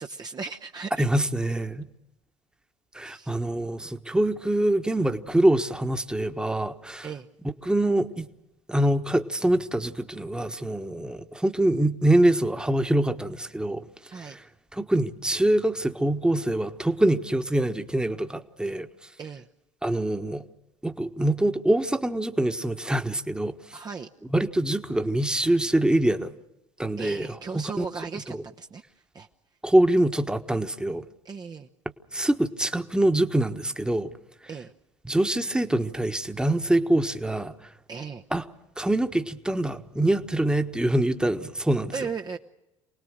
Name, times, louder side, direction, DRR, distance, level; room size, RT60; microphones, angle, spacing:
voice 1, 0.0-1.1 3.0-3.3 7.0-7.3 14.1-14.4 19.2-19.5 23.7-24.1 27.0-28.8 29.1-29.3 31.2-31.7 34.5-34.7 37.9-38.2 41.9-42.4, right 5 dB, 25° right, 3 dB, 0.9 m, -36 dB
voice 2, 1.0-1.9 2.9-7.1 7.6-8.3 8.7-13.8 14.2-14.4 14.7-18.9 19.8-20.4 20.8-23.5 24.3-26.3 26.8-27.9 28.3-28.4 29.6-31.0 32.1-34.1 35.0-37.5 38.3-38.4 38.8-41.9, right 1 dB, 5° right, 8 dB, 1.4 m, -24 dB
28.5 x 19.5 x 6.5 m, 0.93 s
figure-of-eight pair, 65°, 15 cm